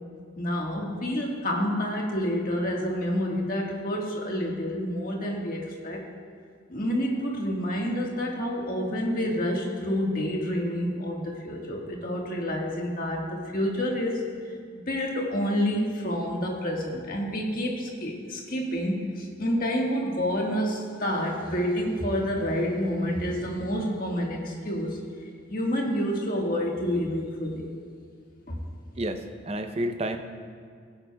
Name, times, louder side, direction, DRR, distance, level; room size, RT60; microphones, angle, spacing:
voice 1, 0.4-6.0 6.7-14.2 14.9-27.7 28.5-28.6, equal, 45° left, -1 dB, 1.5 m, -28 dB
voice 2, 29.0-30.2, right 1 dB, 30° right, 7 dB, 0.6 m, -30 dB
16.0 x 9.7 x 2.3 m, 2.2 s
head